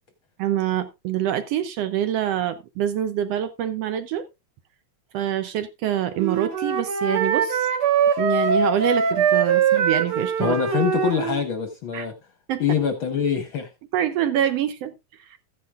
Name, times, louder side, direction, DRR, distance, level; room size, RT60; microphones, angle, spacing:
voice 1, 0.4-4.2 5.1-7.7 8.2-10.5 11.9-12.1 12.5-12.6 13.9-15.4, right 11 dB, 80° right, 1.4 m, -25 dB
Wind instrument woodwind instrument, 6.2-11.4, right 6 dB, 55° right, 1.9 m, -22 dB
voice 2, 10.4-12.1 12.6-13.7, left 7 dB, 65° left, 1.3 m, -24 dB
14.5 x 9.5 x 2.4 m
omnidirectional pair, 3.4 m